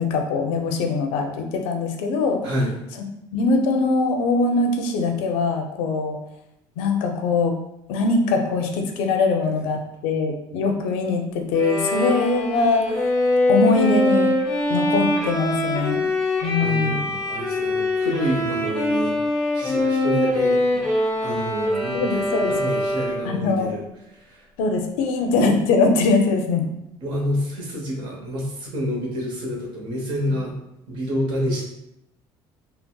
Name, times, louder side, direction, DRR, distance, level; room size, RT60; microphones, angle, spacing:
voice 1, 0.0-2.4 3.3-6.2 6.8-7.6 7.9-13.1 13.5-14.3 14.7-16.0 16.4-17.2 21.9-22.5 23.2-23.7 24.6-26.7, left 3 dB, 90° left, 3 dB, 0.5 m, -22 dB
voice 2, 2.4-2.7 16.6-19.2 19.5-20.9 21.2-23.8 24.1-24.4 27.0-30.5 30.9-31.6, equal, 55° right, -1 dB, 0.9 m, -28 dB
Bowed string instrument, 11.5-23.4, left 1 dB, ahead, 0.7 m, -23 dB
3.9 x 2.0 x 2.2 m, 0.83 s
cardioid pair, 150°, 9 cm